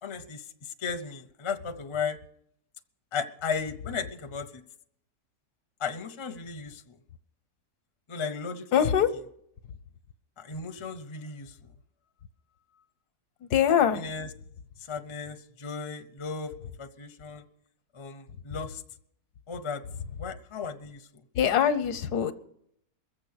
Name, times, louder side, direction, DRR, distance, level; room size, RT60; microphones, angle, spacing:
voice 1, 0.0-2.2 3.1-4.6 5.8-6.9 8.1-8.8 10.4-11.6 13.9-14.3 14.9-17.4 17.9-18.8 19.5-19.8 20.2-21.0, left 5 dB, 35° left, 7 dB, 0.4 m, -35 dB
voice 2, 8.7-9.1 13.4-14.0 21.3-22.3, left 9 dB, 85° left, 11 dB, 1.4 m, -23 dB
21.5 x 7.5 x 6.6 m, 0.72 s
omnidirectional pair, 1.6 m